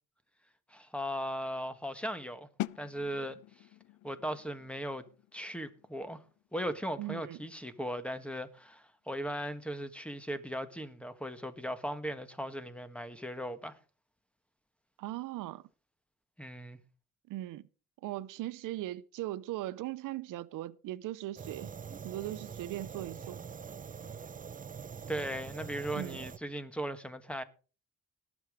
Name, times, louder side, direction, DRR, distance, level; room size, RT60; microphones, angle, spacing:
voice 1, 0.7-2.5 2.8-3.4 4.0-5.1 5.3-6.2 6.5-13.8 16.4-16.8 25.1-27.4, equal, 5° left, 1.4 m, -38 dB
sound 1, 2.6-8.3, left 17 dB, 75° left, 0.5 m, -45 dB
voice 2, 7.0-7.4 15.0-15.6 17.3-17.6 18.0-21.7 22.0-23.4 25.9-26.2, right 15 dB, 90° right, 0.7 m, -39 dB
Fire, 21.4-26.4, right 6 dB, 25° right, 0.6 m, -44 dB
18.5 x 7.1 x 4.9 m
cardioid pair, 105°, 31 cm